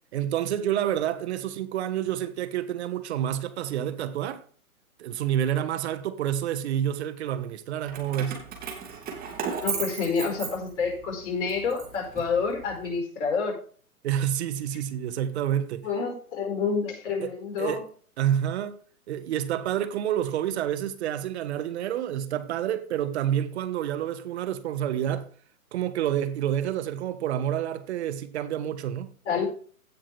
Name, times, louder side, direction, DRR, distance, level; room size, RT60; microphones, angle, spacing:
voice 1, 0.1-4.4 5.0-8.4 14.0-15.9 17.2-17.3 17.6-17.9 18.2-18.8 19.1-25.3 25.7-29.1, right 10 dB, 45° right, 1.3 m, -28 dB
Keys jangling, 7.9-11.0 11.5-12.8, right 7 dB, 20° right, 2.6 m, -35 dB
voice 2, 9.6-13.6 15.8-17.8 29.2-29.5, left 5 dB, 50° left, 4.9 m, -28 dB
16.5 x 6.0 x 3.4 m
hypercardioid pair, 130°, 44 cm